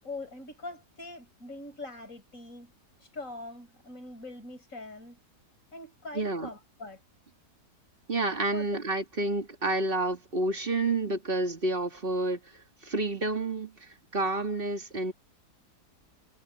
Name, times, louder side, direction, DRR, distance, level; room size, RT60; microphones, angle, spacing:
voice 1, 0.0-2.7 3.0-5.2 5.7-7.0 8.5-8.7, left 2 dB, 50° left, 7.6 m, -42 dB
voice 2, 6.1-6.5 8.1-12.4 12.8-13.7 14.1-15.1, right 2 dB, 35° right, 2.3 m, -29 dB
omnidirectional pair, 1.8 m